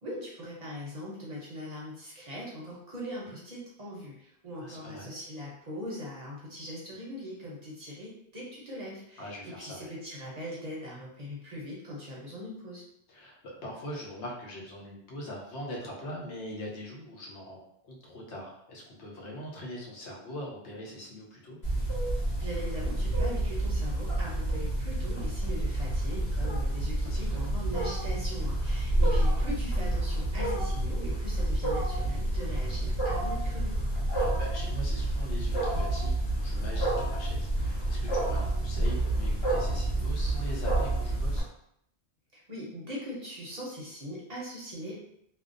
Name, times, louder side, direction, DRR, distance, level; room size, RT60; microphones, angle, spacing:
voice 1, 0.0-12.8 22.4-33.7 42.3-45.0, equal, 45° right, -5 dB, 0.6 m, -41 dB
voice 2, 4.5-5.1 9.2-9.9 13.1-17.6 17.8-21.6 27.0-27.4 28.9-29.5 34.1-41.5, equal, 90° left, -3 dB, 1.0 m, -42 dB
Wild animals, 21.6-41.4, right 1 dB, 70° left, 1.3 m, -29 dB
2.6 x 2.0 x 2.5 m, 0.74 s
omnidirectional pair, 1.1 m